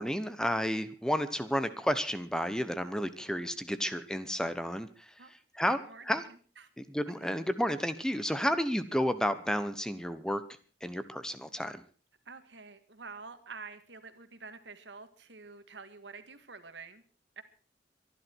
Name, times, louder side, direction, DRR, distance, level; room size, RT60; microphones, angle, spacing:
voice 1, 0.0-6.2 6.8-10.4 10.8-11.8, equal, 5° left, 12 dB, 1.0 m, -32 dB
voice 2, 5.7-6.7 12.3-17.0 17.4-17.5, right 4 dB, 80° right, 10 dB, 1.8 m, -48 dB
24.0 x 11.0 x 4.6 m, 0.40 s
head